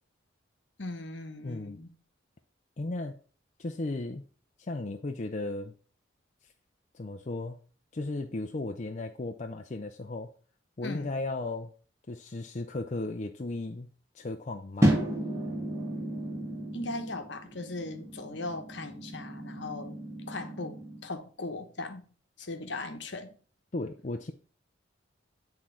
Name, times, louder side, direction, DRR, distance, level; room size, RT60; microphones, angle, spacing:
voice 1, 0.8-1.9 10.8-11.2 16.7-20.0 20.3-22.1 22.4-23.4, left 2 dB, 65° left, 1.1 m, -38 dB
voice 2, 1.4-1.8 2.8-3.2 3.6-4.2 4.6-5.7 6.9-7.6 7.9-10.3 10.8-11.7 12.1-13.9 14.1-15.0 23.7-24.3, left 2 dB, 40° left, 0.5 m, -35 dB
sound 1, 14.8-21.0, right 1 dB, 15° right, 1.8 m, -32 dB
8.4 x 3.8 x 5.7 m
head